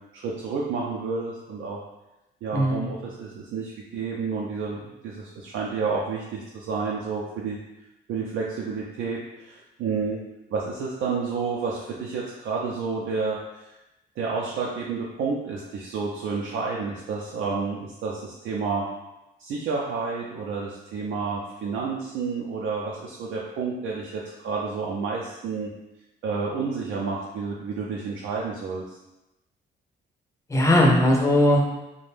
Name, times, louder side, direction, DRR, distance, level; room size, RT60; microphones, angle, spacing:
voice 1, 0.1-1.8 2.4-7.6 8.1-10.2 10.5-13.8 14.2-18.9 19.4-25.7 26.2-29.0, right 4 dB, 75° right, -3 dB, 0.4 m, -30 dB
voice 2, 2.5-2.9 30.5-31.7, left 1 dB, 15° left, 0 dB, 0.5 m, -19 dB
2.5 x 2.1 x 3.3 m, 0.96 s
cardioid pair, 90°, 20 cm